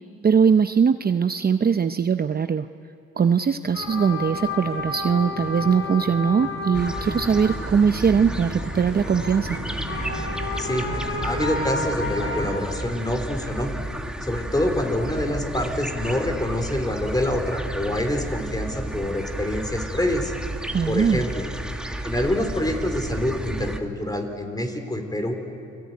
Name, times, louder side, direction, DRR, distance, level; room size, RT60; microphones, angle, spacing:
voice 1, 0.2-2.7 3.2-9.6 20.7-21.3, right 6 dB, 30° right, 9 dB, 0.7 m, -21 dB
sound 1, 3.7-12.6, left 2 dB, 45° left, 7.4 m, -31 dB
sound 2, 6.7-23.8, right 1 dB, 5° right, 1.8 m, -32 dB
voice 2, 10.6-10.9 11.2-13.7 14.2-20.3 20.9-21.5 22.0-25.4, left 1 dB, 15° left, 5 dB, 4.0 m, -26 dB
29.0 x 20.0 x 9.6 m, 2.5 s
cardioid pair, 90°, 30 cm